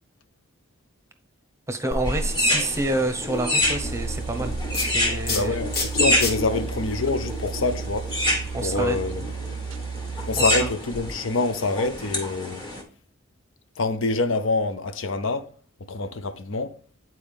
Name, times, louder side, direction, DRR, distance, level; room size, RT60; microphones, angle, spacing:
voice 1, 1.7-4.5 4.8-5.6 8.5-9.0 10.4-10.7, right 2 dB, 15° right, 0.8 m, -28 dB
sound 1, 1.9-8.5, left 2 dB, 50° left, 1.4 m, -33 dB
sound 2, 2.1-12.8, left 1 dB, 25° left, 1.6 m, -28 dB
sound 3, 3.6-11.5, right 5 dB, 85° right, 0.4 m, -34 dB
voice 2, 5.3-8.1 8.6-9.2 10.3-12.7 13.8-15.5 15.8-16.8, left 3 dB, 80° left, 0.7 m, -26 dB
9.1 x 4.6 x 3.5 m
head